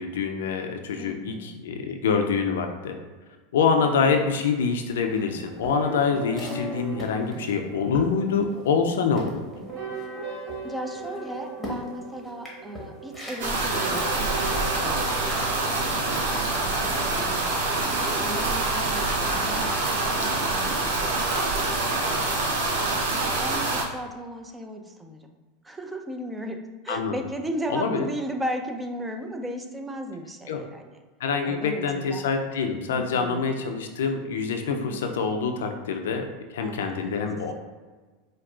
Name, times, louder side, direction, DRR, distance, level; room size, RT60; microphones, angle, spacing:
voice 1, 0.0-3.0 3.5-9.4 26.9-27.2 27.7-28.1 30.5-30.6 31.2-37.5, left 5 dB, 75° left, 5 dB, 0.4 m, -26 dB
voice 2, 1.0-1.6 10.6-15.7 16.0-21.4 23.4-25.4 25.6-30.8 31.4-32.2 32.9-33.4 34.7-35.1 36.6-37.2, right 1 dB, 10° right, 4 dB, 0.4 m, -36 dB
sound 1, 5.0-16.2, right 3 dB, 30° right, 0.8 m, -38 dB
sound 2, 5.1-8.9 9.1-16.4 16.8-17.1, left 1 dB, 5° left, 1.2 m, -42 dB
sound 3, 13.4-23.8, right 2 dB, 70° right, 0.6 m, -25 dB
4.4 x 2.3 x 2.4 m, 1.3 s
hypercardioid pair, 90°, 0 cm